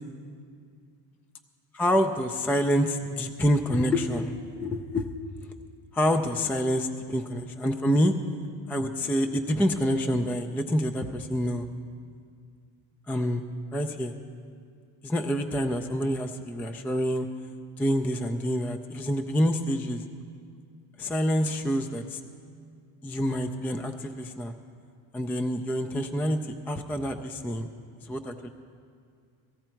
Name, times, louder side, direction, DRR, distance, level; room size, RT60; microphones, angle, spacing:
voice 1, 1.7-5.5 5.9-8.1 8.7-11.7 13.1-13.4 13.7-14.2 15.0-17.3 17.8-20.0 21.0-22.2 23.0-24.5 25.1-26.4 26.7-27.7 28.0-28.5, equal, 5° left, 6 dB, 0.3 m, -27 dB
16.5 x 15.5 x 4.5 m, 2.2 s
cardioid pair, 140°, 44 cm